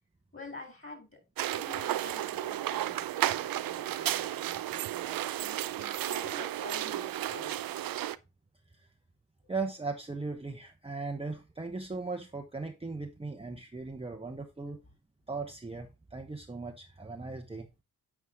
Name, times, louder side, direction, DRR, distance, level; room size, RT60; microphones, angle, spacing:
voice 1, 0.3-1.2 1.5-7.6 9.4-9.5 14.7-14.8, left 3 dB, 25° left, 4.0 m, -48 dB
sound 1, 1.4-8.2, right 13 dB, 50° right, 0.6 m, -33 dB
voice 2, 9.5-14.8 15.3-17.7, right 3 dB, 15° right, 1.0 m, -38 dB
9.4 x 4.6 x 3.7 m
hypercardioid pair, 50°, 45 cm